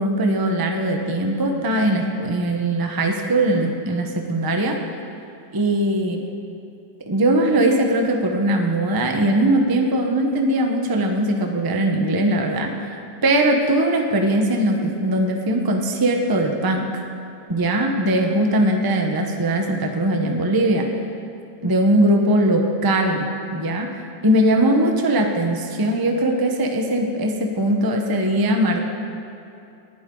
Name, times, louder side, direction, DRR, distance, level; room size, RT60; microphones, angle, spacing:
voice 1, 0.0-4.8 5.5-6.2 7.1-12.9 13.2-16.9 17.5-20.9 21.6-23.3 23.5-23.9 24.2-28.9, right 1 dB, 15° right, 2 dB, 0.7 m, -20 dB
19.0 x 11.5 x 3.9 m, 2.8 s
omnidirectional pair, 2.0 m